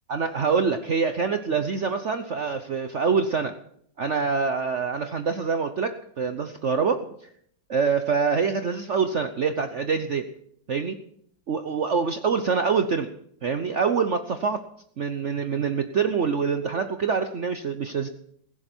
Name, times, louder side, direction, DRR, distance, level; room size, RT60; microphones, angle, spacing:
voice 1, 0.1-3.6 4.0-7.1 7.7-10.2 10.7-11.0 11.5-13.1 13.4-14.6 15.0-18.1, right 5 dB, 50° right, 8 dB, 0.9 m, -25 dB
17.5 x 16.0 x 4.4 m, 0.66 s
omnidirectional pair, 2.0 m